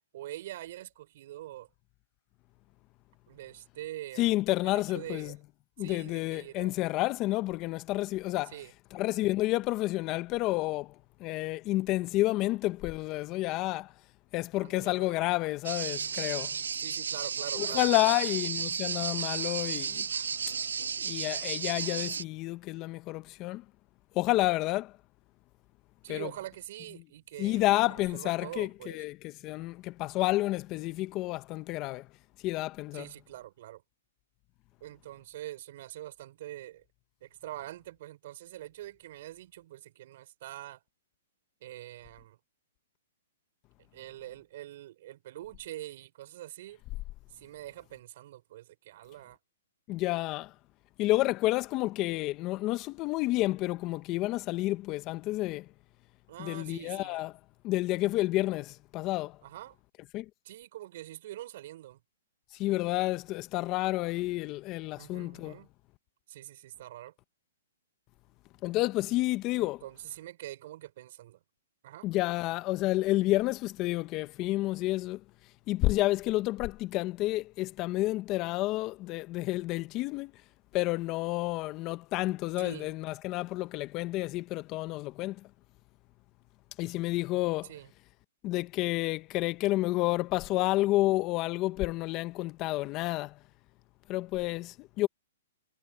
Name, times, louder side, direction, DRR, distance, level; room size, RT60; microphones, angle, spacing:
voice 1, 0.0-1.7 3.3-4.4 4.6-5.4 5.8-6.8 8.4-8.7 14.6-15.2 16.8-18.2 26.0-29.0 32.9-33.8 34.8-36.8 37.2-40.8 41.6-42.4 43.8-46.8 47.3-49.4 56.3-57.2 59.4-59.8 60.4-62.0 65.0-65.7 66.3-67.1 69.6-71.4 71.8-72.1 82.6-82.9 87.6-87.9, right 14 dB, 55° right, 4.6 m, -44 dB
voice 2, 4.2-5.4 5.8-8.5 8.9-10.9 11.2-13.9 14.3-16.5 17.5-20.1 21.0-23.6 24.1-24.9 26.1-26.3 27.4-32.1 32.4-33.0 49.9-50.5 51.0-55.7 56.4-57.3 57.6-59.4 60.1-60.3 62.5-65.6 68.6-69.8 72.0-75.2 75.7-80.3 80.7-85.4 86.8-87.7 88.4-93.4 94.1-95.1, left 18 dB, 30° left, 1.0 m, -30 dB
sound 1, 15.6-22.2, right 6 dB, 85° right, 0.4 m, -33 dB
hypercardioid pair, 140°, 0 cm